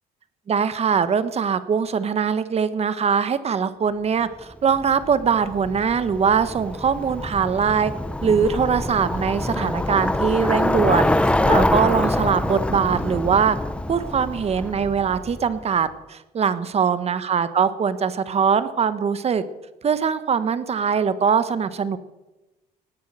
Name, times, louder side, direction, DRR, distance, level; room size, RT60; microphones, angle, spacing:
voice 1, 0.5-7.9 8.2-13.6 13.9-19.4 19.8-22.0, right 6 dB, 40° right, 13 dB, 1.2 m, -22 dB
Bicycle, 4.7-15.6, left 1 dB, 5° left, 0.8 m, -25 dB
18.0 x 9.5 x 7.6 m, 1.1 s
cardioid pair, 110°, 17 cm